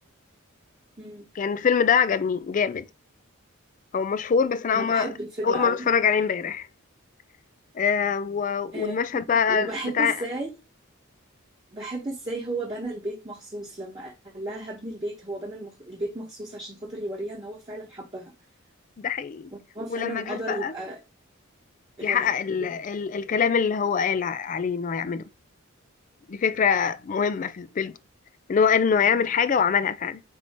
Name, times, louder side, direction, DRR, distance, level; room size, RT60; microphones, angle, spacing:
voice 1, 1.4-2.9 3.9-5.1 5.4-6.7 7.7-10.2 19.0-19.5 19.9-20.7 22.0-25.3 26.3-28.0 28.5-30.2, left 6 dB, 35° left, 0.3 m, -24 dB
voice 2, 4.7-5.9 8.7-10.5 11.7-18.3 19.5-21.0 22.0-22.3, right 1 dB, 25° right, 1.1 m, -34 dB
4.4 x 2.8 x 4.3 m
head